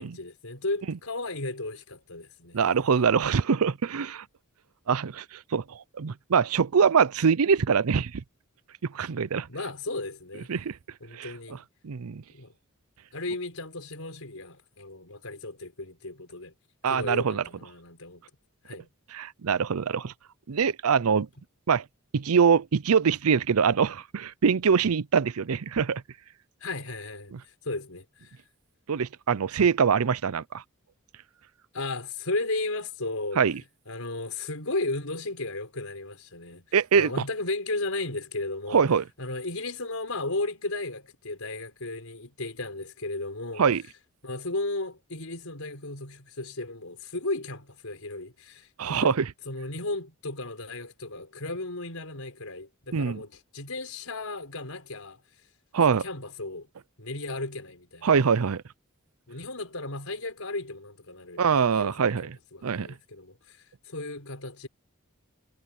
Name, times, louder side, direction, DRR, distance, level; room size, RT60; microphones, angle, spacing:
voice 1, 0.0-2.6 9.5-10.5 11.0-11.6 12.3-12.5 13.1-16.5 16.9-18.2 18.7-18.9 26.6-27.3 27.6-28.4 31.7-33.4 33.9-36.7 36.9-38.8 39.2-43.7 44.2-49.2 49.5-55.2 56.0-56.7 57.0-58.1 59.3-63.6 63.9-64.7, left 2 dB, 75° left, 5.2 m, -35 dB
voice 2, 2.5-4.2 4.9-8.2 8.9-9.5 10.5-10.8 11.1-11.3 11.8-12.2 16.8-17.4 19.1-20.1 20.5-21.3 21.7-21.8 22.1-26.0 27.3-27.4 28.9-30.6 33.4-33.6 36.7-37.1 38.7-39.0 43.6-43.8 48.8-49.3 52.9-53.2 55.7-56.0 58.0-58.6 61.4-62.4 62.6-62.9, right 6 dB, 80° right, 0.6 m, -23 dB
head